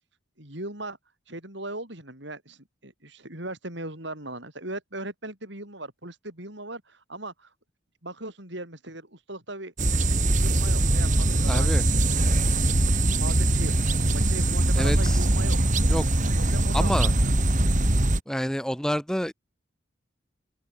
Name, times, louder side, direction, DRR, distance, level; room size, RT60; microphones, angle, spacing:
voice 1, 0.4-1.0 1.3-7.5 8.0-9.7 10.3-11.8 12.2-12.8 13.2-13.7 14.1-15.6 16.4-16.9 17.2-17.3, right 2 dB, 60° right, 6.5 m, -38 dB
sound 1, 9.8-18.2, right 1 dB, 40° right, 2.0 m, -22 dB
voice 2, 11.5-11.8 14.7-15.3 15.9-16.1 16.7-17.1 18.3-19.3, equal, 5° left, 2.2 m, -28 dB
open air
head